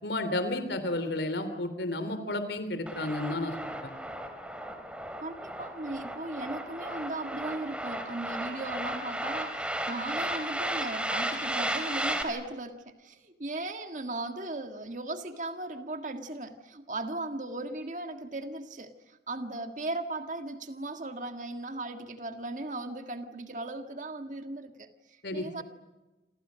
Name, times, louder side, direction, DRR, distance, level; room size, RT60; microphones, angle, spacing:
voice 1, 0.0-3.7 25.2-25.5, left 2 dB, 80° left, 9 dB, 3.4 m, -32 dB
sound 1, 2.9-12.2, right 1 dB, 5° right, 3.3 m, -34 dB
voice 2, 5.2-25.6, right 2 dB, 45° right, 7 dB, 1.8 m, -37 dB
28.5 x 28.0 x 6.4 m, 1.1 s
head